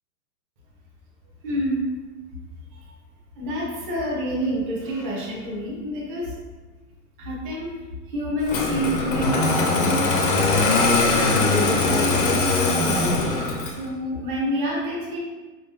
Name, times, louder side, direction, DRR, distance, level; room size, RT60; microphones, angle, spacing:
voice 1, 1.4-1.8 3.4-6.4 7.2-7.7 8.1-10.0 11.1-13.3 13.6-15.2, equal, 30° right, -4 dB, 0.9 m, -28 dB
Engine starting, 8.5-13.9, left 3 dB, 35° left, 0.5 m, -21 dB
4.6 x 3.6 x 2.7 m, 1.3 s
hypercardioid pair, 160°, 49 cm